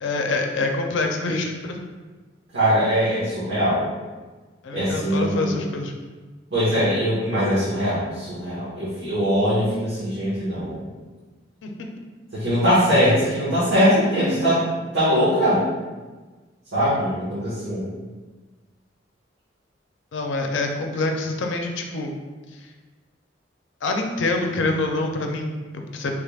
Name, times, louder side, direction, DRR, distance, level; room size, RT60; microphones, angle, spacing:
voice 1, 0.0-1.8 4.6-5.9 11.6-11.7 16.8-17.0 20.1-22.1 23.8-26.1, left 2 dB, 90° left, 3 dB, 0.4 m, -26 dB
voice 2, 2.5-3.8 4.7-5.5 6.5-10.8 12.3-14.6 14.9-15.6 16.7-17.8, equal, 85° right, -12 dB, 1.2 m, -21 dB
3.3 x 3.3 x 2.3 m, 1.3 s
head